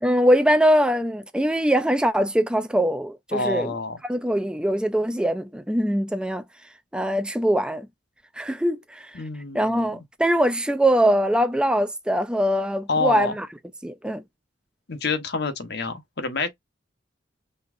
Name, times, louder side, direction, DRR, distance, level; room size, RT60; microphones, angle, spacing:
voice 1, 0.0-3.7 4.0-6.4 6.9-7.9 8.4-9.2 9.5-13.5 13.8-14.2, equal, 5° right, 0.3 m, -22 dB
voice 2, 3.3-4.0 9.1-10.0 12.9-13.3 14.9-16.5, left 3 dB, 60° left, 1.0 m, -27 dB
5.4 x 3.5 x 2.5 m
head